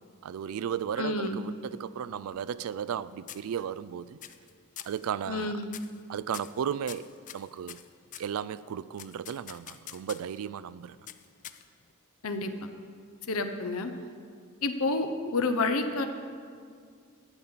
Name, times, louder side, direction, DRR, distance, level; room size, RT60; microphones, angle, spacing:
voice 1, 0.2-4.2 4.8-5.5 6.1-7.8 8.2-11.0, right 8 dB, 80° right, 0.3 m, -35 dB
voice 2, 1.0-1.4 5.3-5.7 12.2-12.7 13.3-13.9 14.6-16.1, left 3 dB, 75° left, 0.8 m, -29 dB
sound 1, 2.1-3.0 3.3-3.9 4.2-4.5 4.8-5.1 5.7-6.0 6.3-8.3 9.0-10.4 11.1-11.9, left 11 dB, 35° left, 0.3 m, -45 dB
11.0 x 5.7 x 8.7 m
head